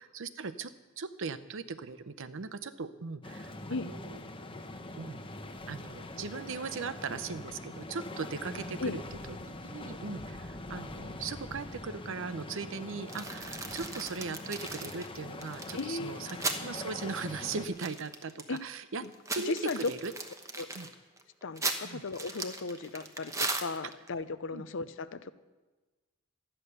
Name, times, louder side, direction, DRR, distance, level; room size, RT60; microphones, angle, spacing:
voice 1, 0.0-4.2 5.0-5.2 5.7-9.0 9.3-19.0 19.3-20.1 20.7-20.9 21.8-22.0 24.5-24.6, right 4 dB, 65° right, 12 dB, 0.7 m, -39 dB
sound 1, 3.2-17.7, left 2 dB, 25° left, 0.9 m, -43 dB
sound 2, 13.1-16.7 17.0-17.1 17.4-18.6 19.0-24.1, right 3 dB, 15° right, 1.0 m, -37 dB
voice 2, 15.7-16.2 18.5-18.6 19.5-19.9 20.6-20.7 21.4-25.3, left 3 dB, 65° left, 14 dB, 0.7 m, -36 dB
13.0 x 9.9 x 6.7 m, 1.2 s
head